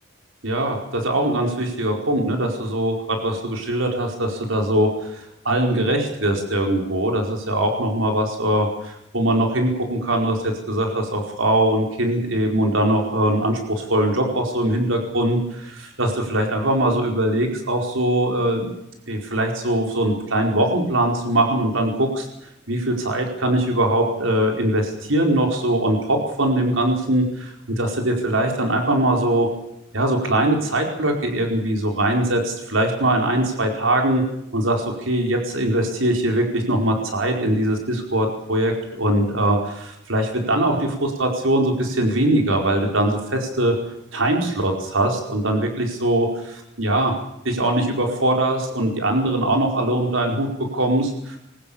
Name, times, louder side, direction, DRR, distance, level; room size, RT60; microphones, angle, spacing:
voice 1, 0.4-18.7 19.1-22.3 22.7-29.5 29.9-34.2 34.5-43.7 44.1-47.1 47.4-51.4, right 1 dB, 80° right, 2 dB, 4.6 m, -21 dB
23.0 x 19.5 x 7.1 m, 0.82 s
head